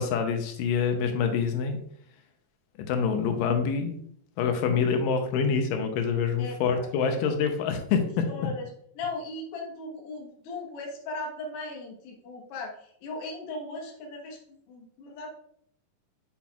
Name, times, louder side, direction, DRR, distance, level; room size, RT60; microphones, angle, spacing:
voice 1, 0.0-1.8 2.9-4.0 4.4-8.2, left 6 dB, 85° left, 5 dB, 2.4 m, -26 dB
voice 2, 6.4-7.5 8.3-8.7 8.9-14.4 14.7-15.3, left 2 dB, 55° left, 0 dB, 1.8 m, -38 dB
8.4 x 5.9 x 2.3 m, 0.67 s
omnidirectional pair, 3.8 m